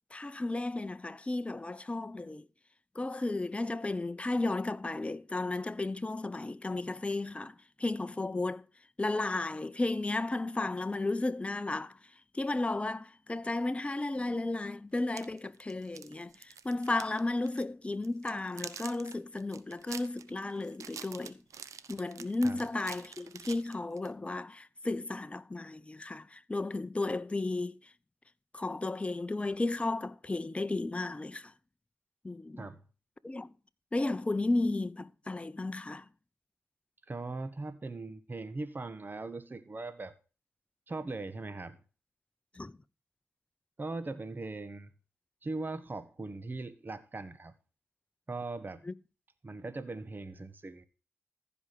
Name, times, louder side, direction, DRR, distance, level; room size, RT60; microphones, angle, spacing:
voice 1, 0.1-2.4 2.9-8.7 9.0-12.0 12.3-21.4 21.9-27.9 28.5-31.5 32.2-32.7 33.2-33.5 33.9-36.1 42.5-42.8 48.8-48.9, left 2 dB, 20° left, 0.8 m, -34 dB
sound 1, 15.0-17.2 17.5-17.6 18.0-24.1, right 7 dB, 80° right, 1.0 m, -46 dB
voice 2, 37.1-40.1 40.9-41.8 43.8-44.9 45.4-47.5 48.3-48.8 49.4-50.8, right 3 dB, 35° right, 1.3 m, -40 dB
14.5 x 5.1 x 6.8 m
cardioid pair, 50°, 5 cm